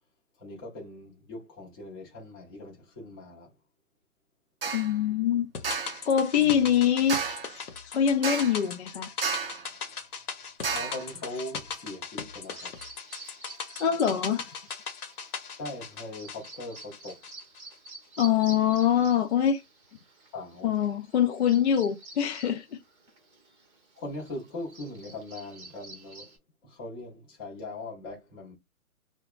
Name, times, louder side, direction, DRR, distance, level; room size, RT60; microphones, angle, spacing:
voice 1, 0.4-3.5 6.4-6.8 10.7-12.7 15.5-17.2 20.3-20.7 23.9-26.3 26.6-28.5, left 2 dB, 15° left, 0.8 m, -40 dB
sound 1, 4.6-4.9 5.6-6.0 7.1-7.6 8.2-8.7 9.2-9.7 10.6-11.1, right 5 dB, 40° right, 0.5 m, -31 dB
voice 2, 4.7-5.5 6.1-7.2 7.8-9.1 13.8-14.4 18.2-19.6 20.6-22.7, left 9 dB, 50° left, 0.4 m, -24 dB
sound 2, 5.5-17.9 18.2-18.3, left 5 dB, 75° left, 0.9 m, -39 dB
Bird vocalization bird call bird song, 12.4-26.4, right 2 dB, 20° right, 0.8 m, -49 dB
2.7 x 2.2 x 2.4 m
hypercardioid pair, 145°, 45 cm